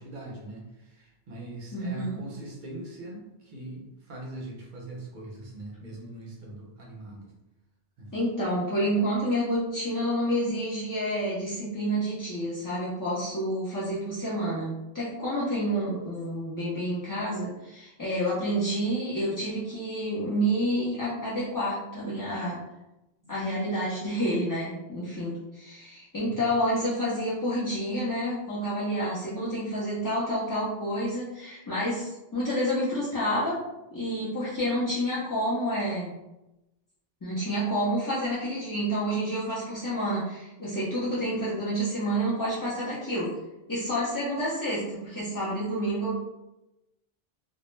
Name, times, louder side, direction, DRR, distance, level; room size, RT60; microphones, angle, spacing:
voice 1, 0.0-7.3 8.0-8.1 23.2-23.5 26.2-26.4, right 1 dB, 55° right, -2 dB, 0.7 m, -42 dB
voice 2, 1.7-2.2 8.1-22.6 23.3-33.6 33.9-36.1 37.2-43.3 43.7-46.1, equal, 30° left, -8 dB, 0.3 m, -29 dB
2.2 x 2.0 x 3.1 m, 0.94 s
omnidirectional pair, 1.1 m